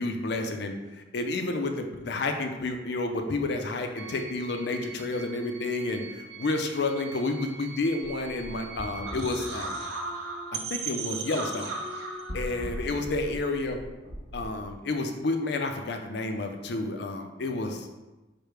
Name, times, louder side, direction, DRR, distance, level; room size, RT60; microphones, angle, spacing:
voice 1, 0.0-9.8 10.5-11.7 12.3-13.8 14.3-17.9, left 2 dB, 65° left, 5 dB, 0.5 m, -30 dB
sound 1, 4.0-9.2, right 6 dB, 90° right, 0.5 m, -45 dB
sound 2, 8.0-14.8, right 2 dB, 70° right, 1.3 m, -36 dB
4.8 x 2.1 x 4.7 m, 1.1 s
head